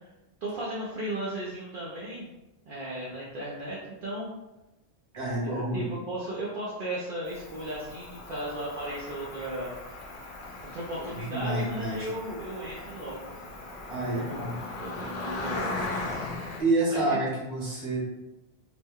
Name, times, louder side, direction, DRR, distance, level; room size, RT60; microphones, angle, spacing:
voice 1, 0.4-2.3 2.6-4.3 5.4-9.7 10.7-13.2 14.0-14.5 14.8-15.8 16.9-17.0, right 1 dB, 60° right, -6 dB, 0.8 m, -36 dB
voice 2, 5.1-5.8 11.0-11.1 11.3-12.1 13.9-14.5 16.6-18.0, right 2 dB, 30° right, -5 dB, 1.0 m, -28 dB
Cricket, 7.3-16.6, left 2 dB, 90° left, 1.0 m, -38 dB
2.9 x 2.1 x 3.5 m, 0.99 s
omnidirectional pair, 1.1 m